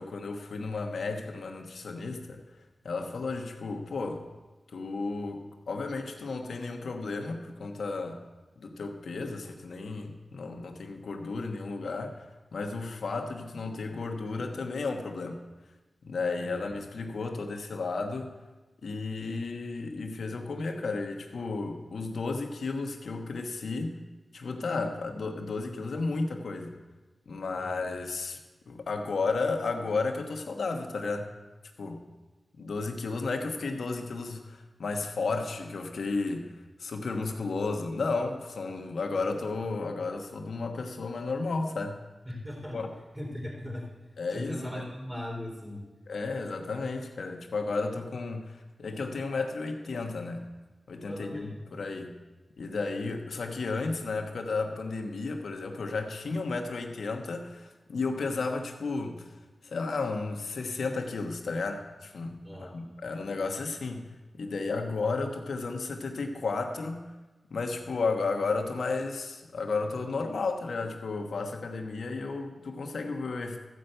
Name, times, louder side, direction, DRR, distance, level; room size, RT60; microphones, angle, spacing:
voice 1, 0.0-2.4 2.8-4.2 4.7-8.2 8.6-12.3 12.5-15.4 16.0-18.3 18.8-24.0 24.3-26.8 27.3-28.4 28.7-31.3 31.8-32.0 32.6-42.0 42.7-42.9 44.2-44.8 46.1-50.5 50.9-52.2 52.6-59.3 59.6-64.0 64.3-67.2 67.5-73.6, left 3 dB, 80° left, 3 dB, 1.3 m, -33 dB
voice 2, 42.2-42.8 43.1-45.8 51.1-51.6 62.4-62.8, left 1 dB, 5° right, -3 dB, 3.3 m, -39 dB
14.0 x 5.6 x 8.0 m, 1.2 s
cardioid pair, 60°, 0 cm